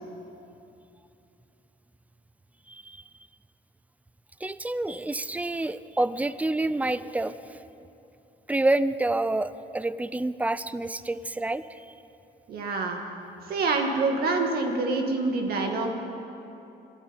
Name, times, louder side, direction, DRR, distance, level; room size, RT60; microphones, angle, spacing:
voice 1, 2.7-3.0 4.4-7.3 8.5-11.6, right 2 dB, 10° right, 15 dB, 0.4 m, -28 dB
voice 2, 12.5-13.0 13.5-15.9, right 3 dB, 65° right, 3 dB, 1.9 m, -26 dB
12.5 x 12.0 x 9.1 m, 2.9 s
cardioid pair, 110°, 17 cm